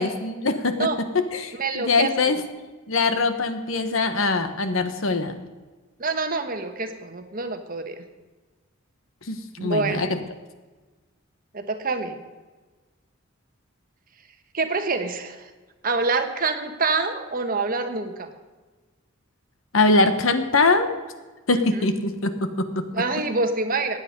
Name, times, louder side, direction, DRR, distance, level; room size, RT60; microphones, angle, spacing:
voice 1, 0.0-2.4 2.9-5.4 9.3-10.2 19.7-20.9 21.5-22.8, left 3 dB, 75° left, 9 dB, 1.3 m, -22 dB
voice 2, 1.6-2.4 6.0-8.0 9.6-10.1 11.5-12.2 14.5-15.5 15.8-18.3 21.5-21.8 22.9-24.0, right 3 dB, 45° right, 7 dB, 1.4 m, -26 dB
16.0 x 9.7 x 5.3 m, 1.3 s
head